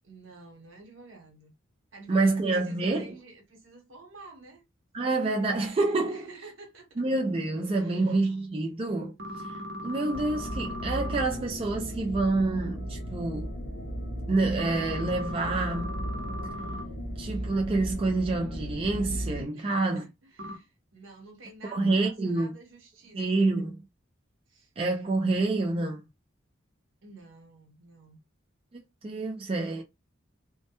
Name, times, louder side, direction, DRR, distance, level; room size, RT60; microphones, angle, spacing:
voice 1, 0.0-1.5 1.9-4.6 6.1-7.1 7.8-8.3 8.6-8.8 19.5-23.5 24.5-24.7 27.0-28.2, right 3 dB, 80° right, 1.0 m, -50 dB
voice 2, 2.1-3.1 4.9-6.3 7.0-9.1 9.8-13.5 14.3-16.0 17.2-20.1 21.7-22.5 23.1-23.8 24.8-26.0 29.0-29.8, right 2 dB, 30° right, 0.3 m, -27 dB
sound 1, 9.2-11.2 14.6-16.8 20.4-20.6, equal, 60° right, 0.7 m, -38 dB
sound 2, 10.1-19.4, equal, 55° left, 0.6 m, -36 dB
2.1 x 2.1 x 2.8 m
head